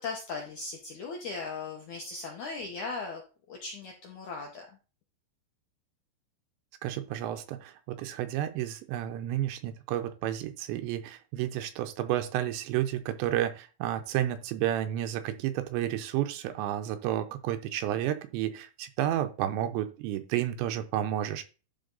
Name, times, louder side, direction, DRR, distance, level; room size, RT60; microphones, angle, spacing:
voice 1, 0.0-3.2 3.5-4.6, left 4 dB, 75° left, 0 dB, 1.7 m, -38 dB
voice 2, 6.8-21.5, right 12 dB, 80° right, 8 dB, 2.9 m, -31 dB
12.0 x 4.3 x 3.9 m, 0.34 s
omnidirectional pair, 5.2 m